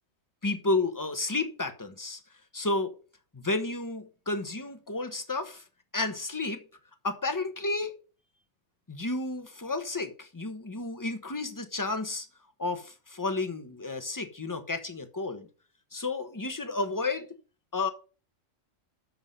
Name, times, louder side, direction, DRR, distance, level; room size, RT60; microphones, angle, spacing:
voice 1, 0.4-2.2 2.5-2.9 3.3-5.6 5.9-6.6 7.0-7.9 8.9-12.3 12.6-15.5 15.9-17.3 17.7-17.9, left 3 dB, 15° left, 1.0 m, -31 dB
7.7 x 5.9 x 5.4 m
omnidirectional pair, 1.3 m